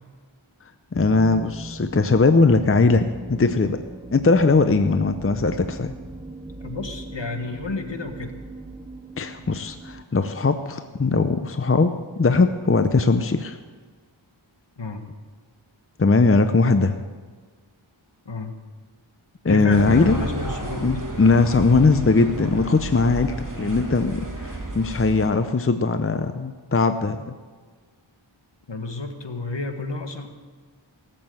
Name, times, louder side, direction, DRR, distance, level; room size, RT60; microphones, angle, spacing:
voice 1, 0.9-3.0 3.3-3.8 4.1-5.9 9.2-11.9 12.2-13.6 16.0-17.0 19.4-20.2 20.8-27.3, left 3 dB, 30° left, 9 dB, 0.6 m, -20 dB
sound 1, 0.9-10.1, right 2 dB, 15° right, 0.6 m, -39 dB
voice 2, 6.6-8.4 14.8-15.0 18.2-18.6 19.4-21.0 28.7-30.3, left 3 dB, 60° left, 5 dB, 1.6 m, -31 dB
sound 2, 19.7-25.3, right 2 dB, 40° right, 2.6 m, -32 dB
18.0 x 7.8 x 7.8 m, 1.5 s
wide cardioid pair, 55°, 48 cm